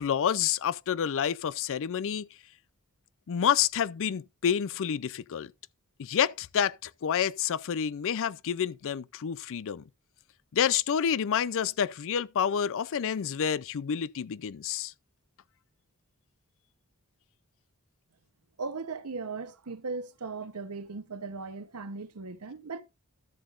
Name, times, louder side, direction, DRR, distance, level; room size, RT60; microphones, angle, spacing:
voice 1, 0.0-2.3 3.3-5.5 6.0-9.8 10.5-14.9, left 8 dB, 60° left, 0.4 m, -28 dB
voice 2, 18.6-22.8, right 4 dB, 80° right, 0.9 m, -38 dB
13.5 x 7.5 x 2.5 m
head